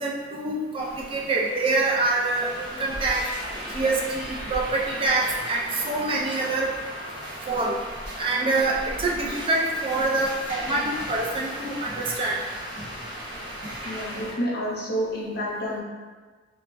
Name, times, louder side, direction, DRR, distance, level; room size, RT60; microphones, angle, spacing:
voice 1, 0.0-3.2 3.7-6.7 7.5-7.8 8.2-12.4, right 2 dB, 30° right, -2 dB, 0.3 m, -25 dB
sound 1, 0.8-14.3, equal, 80° right, 1.2 m, -36 dB
voice 2, 13.8-15.8, equal, 60° left, -5 dB, 0.7 m, -29 dB
3.1 x 2.1 x 2.4 m, 1.4 s
head